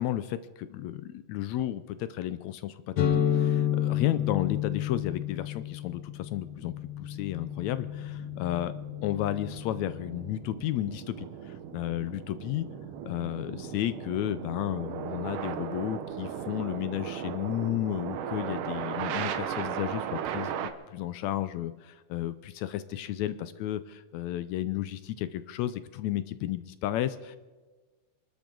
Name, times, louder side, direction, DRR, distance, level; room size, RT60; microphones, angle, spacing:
voice 1, 0.0-8.7 9.0-11.3 11.7-12.7 13.1-20.6 20.9-27.4, left 13 dB, 80° left, 13 dB, 1.7 m, -33 dB
sound 1, 3.0-10.6, left 10 dB, 60° left, 1.6 m, -31 dB
sound 2, 4.7-20.7, right 9 dB, 80° right, 2.5 m, -38 dB
25.5 x 12.0 x 3.9 m, 1.3 s
omnidirectional pair, 3.7 m